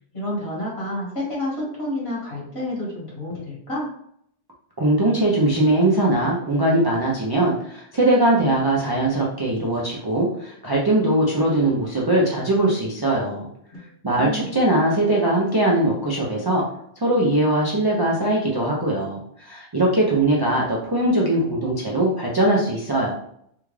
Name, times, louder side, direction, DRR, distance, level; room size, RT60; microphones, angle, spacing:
voice 1, 0.1-3.9 14.1-14.6, left 1 dB, 65° left, -6 dB, 1.9 m, -29 dB
voice 2, 4.8-13.5 14.0-16.6 17.0-23.1, right 1 dB, 30° right, -4 dB, 0.4 m, -21 dB
3.6 x 2.3 x 3.2 m, 0.69 s
omnidirectional pair, 1.1 m